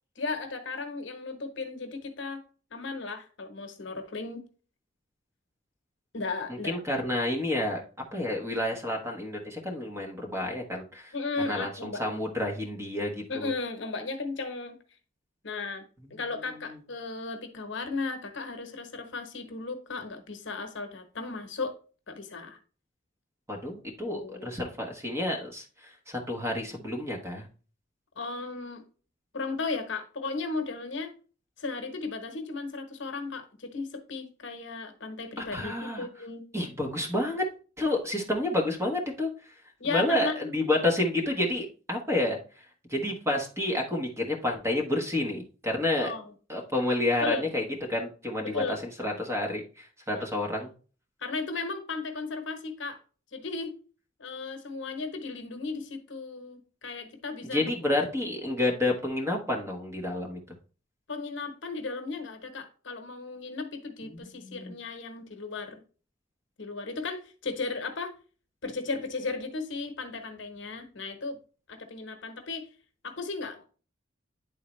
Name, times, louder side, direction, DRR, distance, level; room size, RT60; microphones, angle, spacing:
voice 1, 0.2-2.4 2.7-4.4 6.1-6.8 11.1-12.2 13.3-14.8 15.4-15.8 16.1-21.7 22.1-22.6 24.1-24.6 28.2-28.8 29.3-31.1 31.6-36.4 39.8-40.4 46.0-46.3 47.2-47.5 48.4-49.2 50.1-50.2 51.2-53.0 53.3-53.7 54.2-58.0 61.1-65.8 66.6-68.1 68.6-71.4 71.7-72.7 73.0-73.7, left 3 dB, 65° left, 6 dB, 1.1 m, -35 dB
voice 2, 6.5-7.8 8.1-11.1 11.5-13.5 16.1-16.2 16.5-16.8 23.5-27.5 35.4-36.1 36.5-37.4 37.8-39.3 39.8-42.4 42.9-46.1 46.5-47.6 47.9-50.7 57.5-60.4 64.0-64.7, left 1 dB, 15° right, 1 dB, 1.2 m, -30 dB
9.7 x 3.8 x 3.1 m, 0.37 s
head